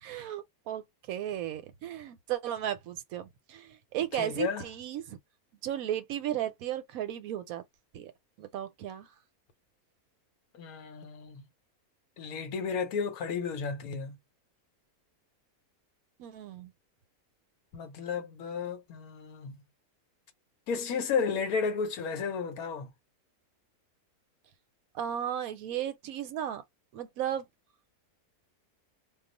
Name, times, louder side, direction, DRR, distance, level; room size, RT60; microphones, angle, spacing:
voice 1, 0.0-5.2 5.6-7.6 7.9-8.1 8.4-9.1 16.2-16.7 24.9-26.6 26.9-27.4, right 11 dB, 75° right, 1.0 m, -35 dB
voice 2, 4.2-4.6 10.5-11.4 12.2-14.2 17.7-19.6 20.7-22.9, left 5 dB, 75° left, 1.1 m, -33 dB
2.4 x 2.3 x 3.8 m
omnidirectional pair, 1.6 m